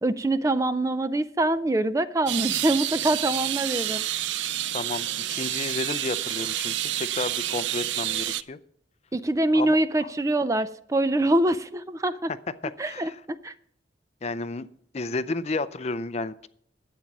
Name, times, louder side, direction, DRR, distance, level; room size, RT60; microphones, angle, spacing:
voice 1, 0.0-4.1 9.1-12.3 12.8-13.1 13.4-13.5, right 1 dB, 15° right, 0.4 m, -24 dB
sound 1, 2.3-8.4, right 13 dB, 75° right, 0.4 m, -29 dB
voice 2, 4.7-8.6 9.5-9.8 12.6-13.2 14.2-14.7 14.9-16.5, left 3 dB, 35° left, 0.5 m, -32 dB
12.5 x 9.0 x 6.0 m
head